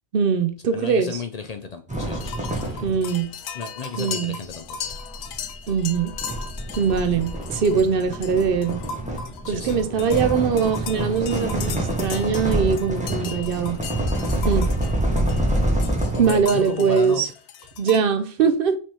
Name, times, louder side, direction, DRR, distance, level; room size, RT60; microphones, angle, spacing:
voice 1, 0.1-1.2 2.8-3.3 4.0-4.4 5.7-6.2 6.8-8.8 9.5-13.8 14.4-14.7 16.2-17.3 17.8-18.8, right 6 dB, 65° right, 0.7 m, -22 dB
voice 2, 0.7-2.9 3.5-5.0 9.4-10.6 10.9-11.4 16.1-17.2, left 5 dB, 50° left, 0.5 m, -34 dB
sound 1, 1.9-18.0, left 6 dB, 80° left, 0.8 m, -37 dB
sound 2, 1.9-3.2 4.4-16.6, right 1 dB, 10° right, 0.9 m, -27 dB
5.3 x 3.4 x 2.9 m
omnidirectional pair, 1.0 m